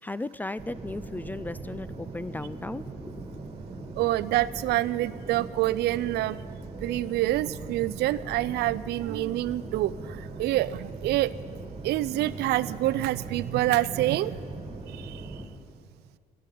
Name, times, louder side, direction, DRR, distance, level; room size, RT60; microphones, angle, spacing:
voice 1, 0.0-3.4 3.8-3.9, left 2 dB, 10° left, 17 dB, 0.3 m, -36 dB
sound 1, 0.6-15.5, right 3 dB, 30° right, 2.2 m, -40 dB
voice 2, 4.0-6.4 6.8-11.3 11.8-14.4 14.9-15.4, right 16 dB, 75° right, 17 dB, 0.5 m, -27 dB
13.0 x 10.5 x 9.2 m, 2.3 s
cardioid pair, 110°, 17 cm